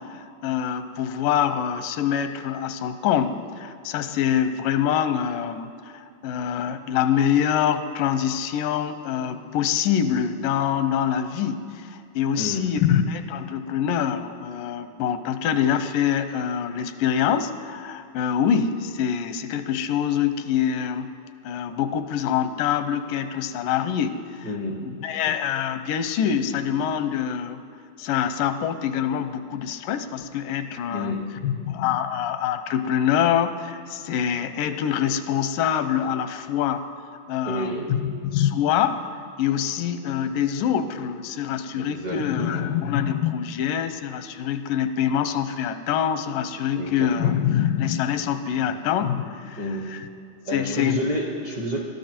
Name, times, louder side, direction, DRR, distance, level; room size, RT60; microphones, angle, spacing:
voice 1, 0.0-21.1 21.4-24.5 24.9-27.6 28.0-31.2 31.4-36.8 37.3-39.0 39.4-50.1 50.5-51.0, left 9 dB, 90° left, 11 dB, 2.4 m, -25 dB
voice 2, 12.4-12.8 24.4-25.0 30.9-31.4 37.4-38.0 41.7-42.7 46.7-47.4 48.7-48.8 49.6-50.0 50.5-51.8, equal, 60° right, 0 dB, 1.0 m, -30 dB
21.5 x 12.5 x 4.4 m, 2.5 s
omnidirectional pair, 3.7 m